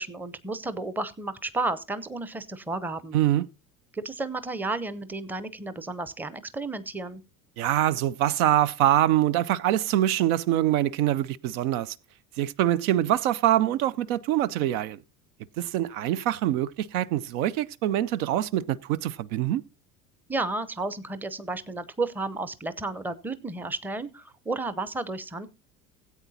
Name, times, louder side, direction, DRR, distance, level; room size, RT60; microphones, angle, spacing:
voice 1, 0.0-3.2 3.9-7.2 20.3-25.5, right 3 dB, 5° right, 0.6 m, -32 dB
voice 2, 3.1-3.5 7.6-12.0 12.4-15.0 15.6-19.6, right 12 dB, 65° right, 0.5 m, -24 dB
17.0 x 8.3 x 2.7 m
hypercardioid pair, 70°, 47 cm